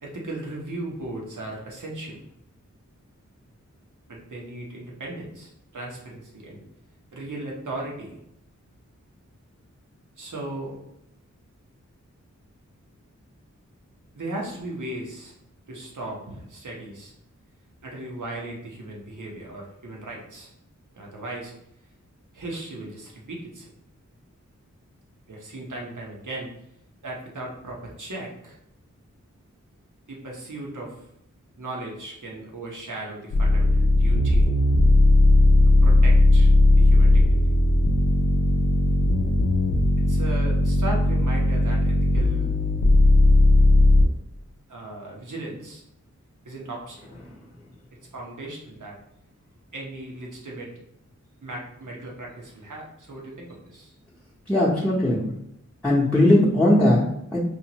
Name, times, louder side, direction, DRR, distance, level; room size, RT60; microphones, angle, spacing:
voice 1, 0.0-2.3 4.1-6.6 7.1-8.2 10.2-10.8 14.1-15.3 15.7-17.1 17.8-20.5 20.9-21.5 22.3-23.7 25.3-26.5 27.0-28.6 30.1-31.0 31.6-34.5 35.7-36.5 36.8-37.4 40.1-42.6 44.7-45.8 46.4-47.0 48.1-49.0 49.7-50.7 51.4-53.9, right 2 dB, 75° right, -2 dB, 1.0 m, -37 dB
sound 1, 33.3-44.1, left 1 dB, 90° left, 0.5 m, -17 dB
voice 2, 54.5-55.3 55.8-57.4, left 1 dB, 5° left, -9 dB, 0.8 m, -19 dB
4.5 x 2.5 x 2.9 m, 0.78 s
wide cardioid pair, 60°, 31 cm